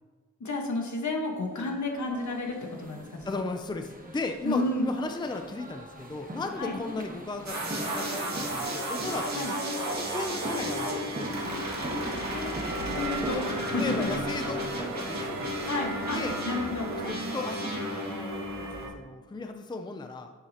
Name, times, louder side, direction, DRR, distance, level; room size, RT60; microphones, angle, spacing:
voice 1, 0.4-3.4 4.4-4.9 6.6-6.8 9.3-9.5 12.3-12.6 12.9-14.1 15.7-16.2 16.4-16.9, left 2 dB, 65° left, 1 dB, 1.4 m, -31 dB
sound 1, 1.5-16.2, right 1 dB, 25° right, 1.1 m, -42 dB
voice 2, 3.2-9.5 10.0-11.4 12.9-13.0 13.7-15.3 16.1-16.4 17.0-20.3, left 3 dB, 15° left, 5 dB, 0.5 m, -36 dB
sound 2, 7.4-18.9, equal, 60° right, 1.9 m, -33 dB
sound 3, 9.2-18.9, right 3 dB, 80° right, 1.0 m, -41 dB
9.7 x 7.4 x 2.9 m, 1.4 s
wide cardioid pair, 115°, 31 cm